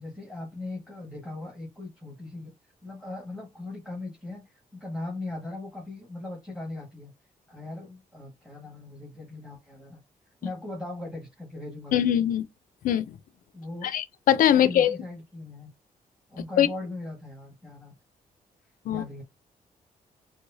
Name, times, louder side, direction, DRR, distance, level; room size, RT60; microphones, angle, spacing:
voice 1, 0.0-2.5 2.8-7.1 7.5-10.0 10.4-12.0 13.5-13.9 14.5-15.7 16.3-17.9 18.9-19.2, left 2 dB, ahead, 1.4 m, -39 dB
voice 2, 11.9-12.4 12.8-13.1 13.8-15.0 16.6-16.7 18.9-19.0, left 10 dB, 75° left, 0.4 m, -21 dB
4.7 x 2.1 x 2.6 m
cardioid pair, 130°, 14 cm